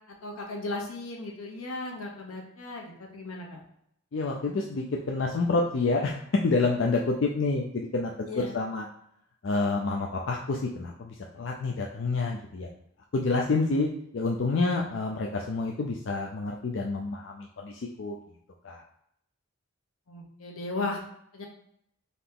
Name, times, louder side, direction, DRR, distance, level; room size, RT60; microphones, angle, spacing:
voice 1, 0.1-3.6 8.3-8.6 20.1-21.0 21.3-21.4, left 2 dB, 80° left, 0 dB, 1.0 m, -36 dB
voice 2, 4.1-8.9 9.4-12.7 13.1-13.9 14.1-18.2 18.6-18.8, left 3 dB, 55° left, 0 dB, 0.4 m, -28 dB
4.0 x 2.8 x 3.6 m, 0.73 s
head